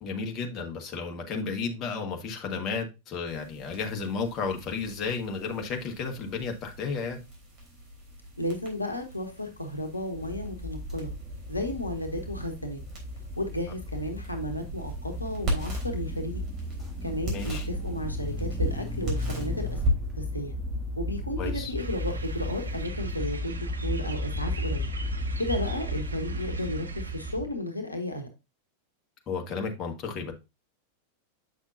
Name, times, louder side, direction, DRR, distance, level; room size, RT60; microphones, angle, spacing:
voice 1, 0.0-7.2 17.3-17.7 21.4-21.7 29.3-30.3, left 5 dB, 30° left, 1.5 m, -33 dB
sound 1, 3.3-22.9, right 1 dB, 30° right, 3.5 m, -38 dB
voice 2, 8.4-11.1 11.5-12.8 13.4-16.4 17.0-19.8 20.2-20.5 21.0-24.9 25.4-28.3, left 1 dB, 85° left, 1.1 m, -33 dB
sound 2, 10.1-27.5, equal, 10° right, 2.5 m, -34 dB
sound 3, 21.8-27.4, right 3 dB, 75° right, 0.8 m, -45 dB
7.7 x 6.1 x 2.6 m
figure-of-eight pair, 90°, 0 cm